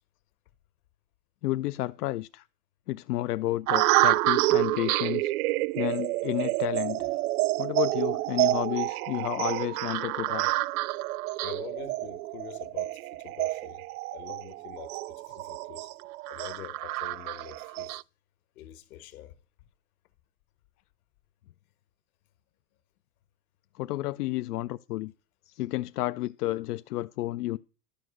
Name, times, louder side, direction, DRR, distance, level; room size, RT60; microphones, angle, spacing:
voice 1, 1.4-2.5 2.9-5.3 5.7-7.0 7.6-10.5 23.7-25.1 25.5-27.6, left 16 dB, 90° left, 0.5 m, -31 dB
sound 1, 3.7-18.0, right 18 dB, 70° right, 0.5 m, -28 dB
voice 2, 11.4-13.9 14.1-15.9 16.3-18.0 18.6-19.4, left 12 dB, 70° left, 1.7 m, -45 dB
11.5 x 5.1 x 7.7 m
supercardioid pair, 130°, 45 cm